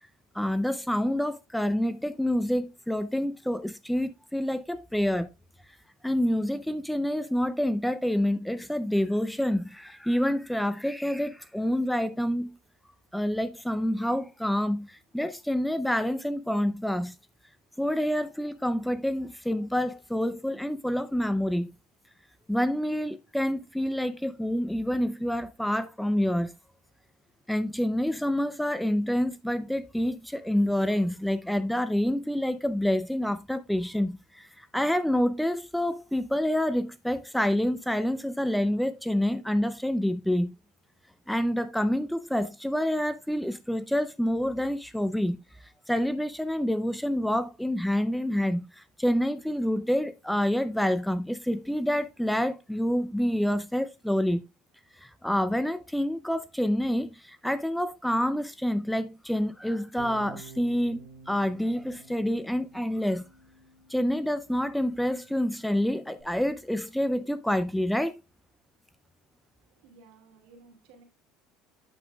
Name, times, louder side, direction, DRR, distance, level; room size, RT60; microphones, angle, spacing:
voice 1, 0.3-5.3 6.0-12.6 13.1-17.1 17.8-21.7 22.5-26.5 27.5-40.5 41.3-45.4 45.9-54.4 55.0-63.2 63.9-68.2, equal, ahead, 0.5 m, -27 dB
Bass guitar, 60.0-66.2, right 5 dB, 25° right, 5.1 m, -51 dB
voice 2, 69.6-71.0, right 3 dB, 75° right, 2.7 m, -56 dB
9.3 x 7.0 x 2.3 m
supercardioid pair, 115°, 0 cm